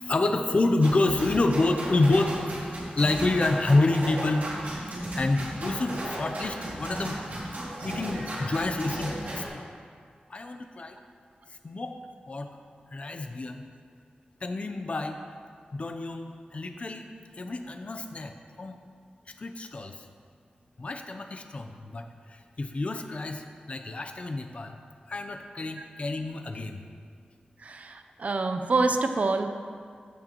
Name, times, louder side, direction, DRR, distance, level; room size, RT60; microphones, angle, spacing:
voice 1, 0.0-4.5 5.1-7.2 7.8-9.7 10.3-11.0 11.5-12.0 12.3-12.6 12.9-13.7 14.4-15.2 15.7-18.8 19.3-20.1 20.8-24.7 25.1-26.8, left 2 dB, 45° left, 6 dB, 0.6 m, -28 dB
sound 1, 0.8-9.5, right 1 dB, 70° right, 2.6 m, -35 dB
voice 2, 27.6-29.5, right 3 dB, 50° right, 6 dB, 0.6 m, -26 dB
15.0 x 6.5 x 3.0 m, 2.1 s
wide cardioid pair, 120°, 3 cm